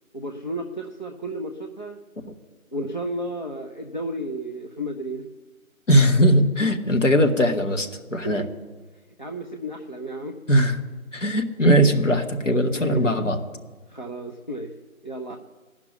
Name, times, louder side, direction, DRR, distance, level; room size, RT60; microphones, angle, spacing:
voice 1, 0.1-2.0 2.7-5.2 8.2-8.5 9.2-10.3 12.7-13.0 13.9-14.7 15.0-15.4, right 1 dB, 35° left, 0 dB, 0.6 m, -33 dB
voice 2, 5.9-8.4 10.5-10.8 11.1-13.4, equal, 55° left, 4 dB, 1.5 m, -19 dB
16.5 x 6.0 x 9.8 m, 1.3 s
figure-of-eight pair, 160°, 43 cm